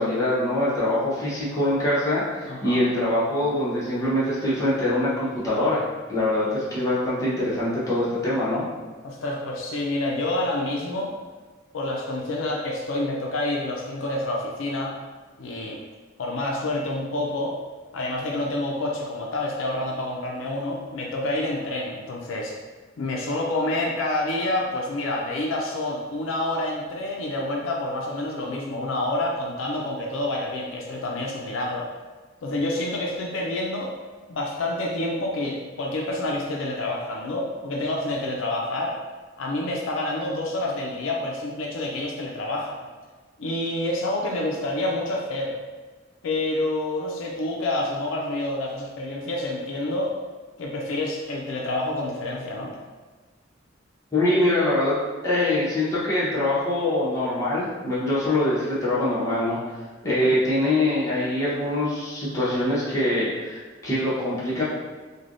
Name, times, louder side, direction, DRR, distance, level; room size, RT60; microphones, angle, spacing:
voice 1, 0.0-5.8 6.1-8.6 54.1-55.0 55.2-59.6 60.0-64.6, left 1 dB, 15° left, -10 dB, 0.9 m, -24 dB
voice 2, 2.5-2.8 9.0-11.1 11.7-15.0 15.4-15.8 16.2-17.6 17.9-22.6 23.0-31.9 32.4-33.9 34.3-39.0 39.4-42.8 43.4-45.5 46.2-50.1 50.6-52.7 60.0-60.4, left 1 dB, 85° left, -1 dB, 0.4 m, -28 dB
3.3 x 2.2 x 2.5 m, 1.4 s
head